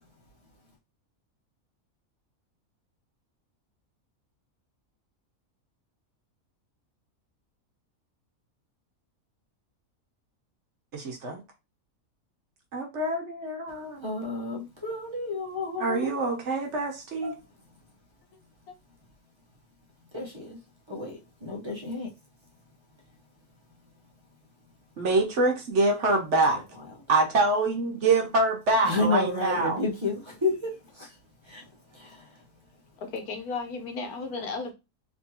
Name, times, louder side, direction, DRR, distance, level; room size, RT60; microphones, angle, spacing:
voice 1, 10.9-11.4 12.7-14.0 15.8-17.3 25.0-26.6 27.1-29.8, right 2 dB, 55° right, 1.1 m, -25 dB
voice 2, 14.0-16.1 17.2-17.3 20.1-20.6 20.9-22.1 28.8-31.1 31.5-31.6 31.9-32.3, left 3 dB, 25° right, 0.9 m, -31 dB
voice 3, 33.0-34.7, left 4 dB, 85° left, 1.4 m, -34 dB
3.5 x 3.1 x 2.8 m
omnidirectional pair, 1.5 m